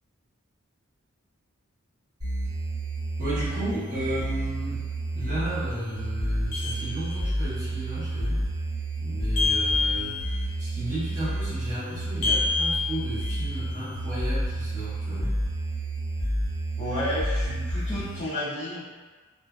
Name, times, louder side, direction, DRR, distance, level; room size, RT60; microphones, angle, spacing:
sound 1, 2.2-18.2, right 1 dB, 65° right, 1.5 m, -30 dB
voice 1, 3.2-4.9 5.1-8.5 9.0-15.4, right 1 dB, 40° right, -11 dB, 1.0 m, -34 dB
sound 2, 6.5-7.5 9.4-10.6 12.2-13.7, left 4 dB, 75° left, 0.7 m, -28 dB
voice 2, 16.8-18.9, left 1 dB, 25° left, -15 dB, 0.6 m, -31 dB
2.6 x 2.4 x 2.2 m, 1.4 s
head